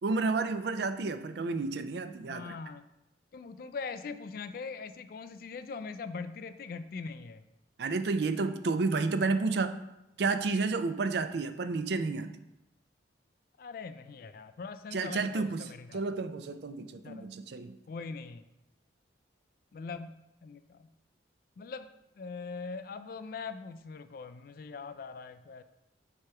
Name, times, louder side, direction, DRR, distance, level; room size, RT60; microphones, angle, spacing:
voice 1, 0.0-2.5 7.8-9.8 10.2-12.4 14.9-17.8, right 3 dB, 60° right, 10 dB, 0.4 m, -31 dB
voice 2, 2.3-2.8 3.3-7.4 13.6-16.0 17.0-17.3 17.9-18.4 19.7-20.1 20.4-20.9 21.6-21.9 22.2-25.6, left 4 dB, 50° left, 11 dB, 0.3 m, -41 dB
7.7 x 2.9 x 4.6 m, 0.89 s
head